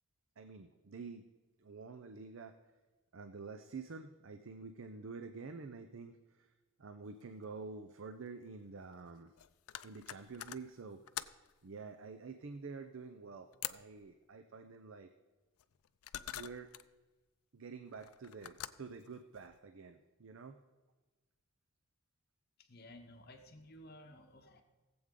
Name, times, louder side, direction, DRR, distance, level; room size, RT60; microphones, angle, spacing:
voice 1, 0.4-1.3 1.6-2.6 3.1-6.5 6.8-9.3 9.8-11.0 11.6-15.1 16.3-16.7 17.5-20.6, right 4 dB, 65° right, 8 dB, 0.5 m, -48 dB
sound 1, 7.2-7.3 7.5-7.6 8.8-11.6 13.5-14.0 15.6-16.9 17.9-19.6, left 12 dB, 85° left, 0.4 m, -47 dB
voice 2, 22.6-24.6, left 1 dB, 45° left, 5 dB, 0.8 m, -55 dB
18.0 x 7.8 x 3.7 m, 1.3 s
head